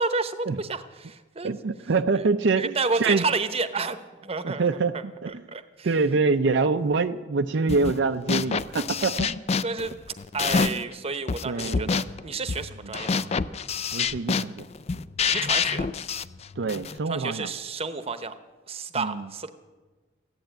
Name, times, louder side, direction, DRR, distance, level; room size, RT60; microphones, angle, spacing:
voice 1, 0.0-1.5 2.1-2.2 2.6-4.7 5.3-5.9 9.6-9.9 10.3-13.3 15.3-15.9 17.1-18.3 18.7-19.5, right 4 dB, 35° right, 11 dB, 0.9 m, -30 dB
voice 2, 1.4-3.2 4.4-5.4 5.8-9.3 11.4-11.9 13.9-14.6 16.6-17.5 18.9-19.3, right 4 dB, 70° right, 8 dB, 0.5 m, -25 dB
sound 1, 7.7-8.0 8.3-10.9 11.3-17.0, left 5 dB, 35° left, 0.4 m, -27 dB
15.0 x 10.5 x 8.8 m, 1.3 s
head